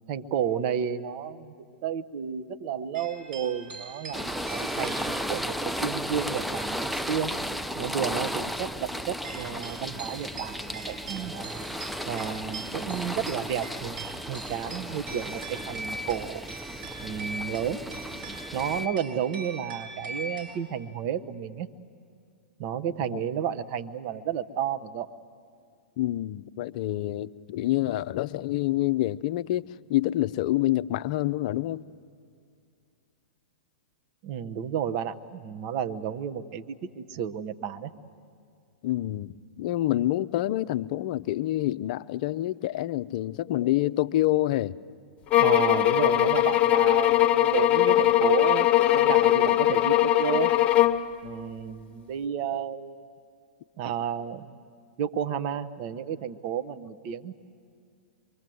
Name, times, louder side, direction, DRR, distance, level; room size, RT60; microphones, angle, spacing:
voice 1, 0.1-1.5 1.8-7.3 7.8-11.6 12.0-16.4 17.0-17.8 18.5-21.7 22.6-25.1 34.2-37.9 45.4-50.5 51.2-53.0 53.8-54.5 55.0-57.3, right 8 dB, 45° right, 10 dB, 1.0 m, -32 dB
sound 1, 2.9-7.6 7.9-8.7 9.2-20.6, right 2 dB, 65° right, 7.2 m, -41 dB
sound 2, 4.1-18.9, equal, ahead, 0.5 m, -34 dB
voice 2, 26.0-31.8 38.8-44.8, left 15 dB, 50° left, 14 dB, 0.5 m, -27 dB
sound 3, 45.3-51.1, left 14 dB, 30° left, 1.3 m, -21 dB
24.5 x 23.0 x 7.8 m, 2.3 s
hypercardioid pair, 110°, 5 cm